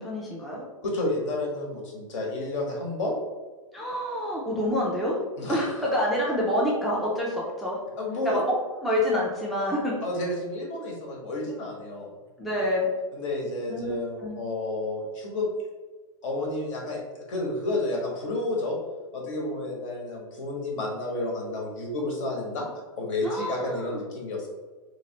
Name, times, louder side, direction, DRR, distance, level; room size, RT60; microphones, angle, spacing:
voice 1, 0.0-0.6 3.7-5.2 5.5-7.8 8.2-8.4 8.8-9.9 12.4-12.9 13.7-13.9 14.2-14.3 23.2-24.0, left 1 dB, ahead, -5 dB, 0.4 m, -27 dB
voice 2, 0.8-3.1 5.4-5.7 8.0-8.4 10.0-12.1 13.1-15.5 16.2-18.8 19.1-22.7 23.0-24.5, left 2 dB, 60° left, -1 dB, 1.2 m, -31 dB
3.2 x 3.0 x 2.9 m, 1.3 s
hypercardioid pair, 140°, 18 cm